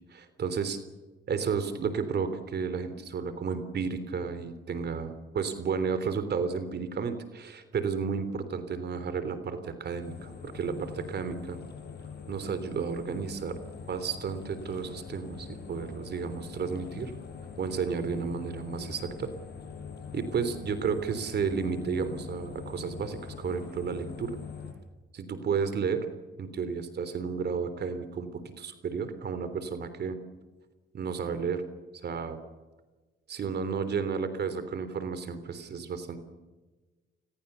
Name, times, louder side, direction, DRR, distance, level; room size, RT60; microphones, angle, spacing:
voice 1, 0.1-0.8 1.3-11.6 12.3-13.5 13.9-17.1 17.6-19.3 20.1-24.3 25.1-26.1 26.4-30.2 30.9-31.6 32.0-32.4 33.3-36.2, right 6 dB, 55° right, 11 dB, 3.5 m, -32 dB
sound 1, 10.0-24.7, left 6 dB, 55° left, 6.8 m, -43 dB
29.5 x 21.0 x 7.0 m, 1.2 s
cardioid pair, 90°, 20 cm